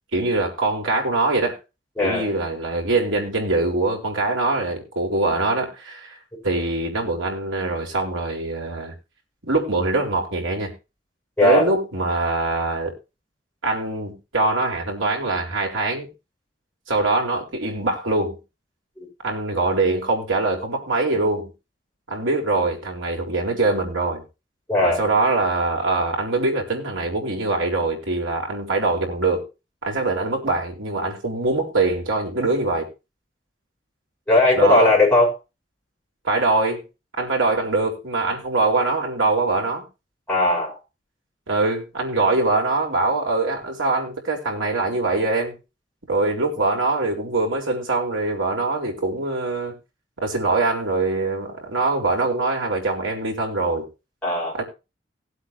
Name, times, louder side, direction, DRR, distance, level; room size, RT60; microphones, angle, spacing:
voice 1, 0.1-1.6 2.0-6.2 6.4-8.9 9.4-10.7 11.4-12.9 13.6-16.1 16.9-18.4 19.2-21.5 22.1-24.2 24.8-29.4 29.8-32.9 34.5-34.9 36.2-36.8 37.2-39.8 41.5-45.6 46.1-49.7 50.2-53.9 54.5-54.6, right 2 dB, 90° right, 4.2 m, -23 dB
voice 2, 2.0-2.3 11.4-11.7 19.0-19.1 24.7-25.0 34.3-35.3 40.3-40.8 54.2-54.6, left 2 dB, 5° left, 6.4 m, -18 dB
19.5 x 8.0 x 3.0 m
head